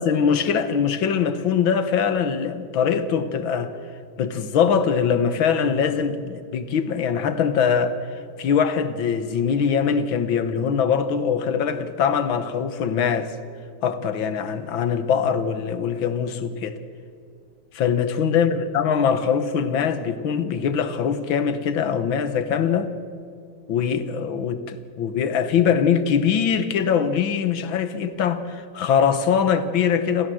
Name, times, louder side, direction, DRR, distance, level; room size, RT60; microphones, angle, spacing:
voice 1, 0.0-3.7 4.2-8.0 8.4-13.4 13.8-16.8 17.7-22.9 23.7-30.3, left 7 dB, 65° left, 1.9 m, -22 dB
27.0 x 15.5 x 7.7 m
omnidirectional pair, 2.4 m